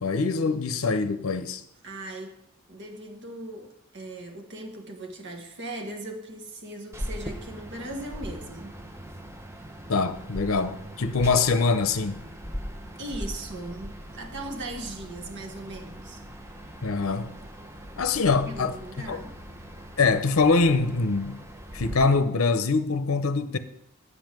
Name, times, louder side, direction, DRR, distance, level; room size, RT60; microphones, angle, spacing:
voice 1, 0.0-1.6 9.9-12.2 16.8-17.4 18.0-18.8 19.1-19.2 20.0-21.4 21.7-23.6, left 4 dB, 70° left, 0.7 m, -24 dB
voice 2, 1.8-2.4 2.7-8.8 13.0-16.2 18.4-19.4, right 1 dB, 55° right, 1.5 m, -38 dB
sound 1, 6.9-22.0, equal, 10° right, 0.8 m, -40 dB
8.3 x 5.5 x 7.4 m
head